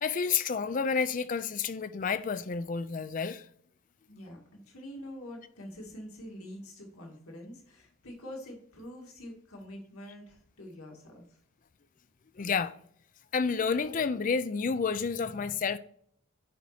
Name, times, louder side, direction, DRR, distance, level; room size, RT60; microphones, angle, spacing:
voice 1, 0.0-3.4 12.4-12.7 13.3-15.8, left 5 dB, 35° left, 0.4 m, -30 dB
voice 2, 4.1-11.2, left 1 dB, 90° left, 2.1 m, -45 dB
10.0 x 4.1 x 4.9 m
head